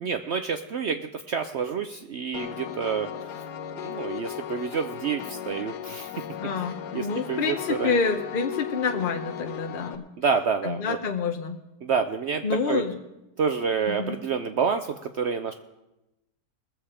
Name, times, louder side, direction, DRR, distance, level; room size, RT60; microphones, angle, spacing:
voice 1, 0.0-3.3 3.8-6.1 6.6-6.7 6.9-8.0 10.2-11.0 11.8-12.8 13.4-15.5, right 6 dB, 70° right, 8 dB, 0.6 m, -28 dB
Piano, 2.3-9.9, left 9 dB, 80° left, 1.4 m, -36 dB
voice 2, 6.4-10.0 10.6-11.6 12.4-13.0 13.9-14.2, left 5 dB, 50° left, 4 dB, 0.7 m, -28 dB
20.5 x 7.3 x 4.9 m, 0.95 s
omnidirectional pair, 1.7 m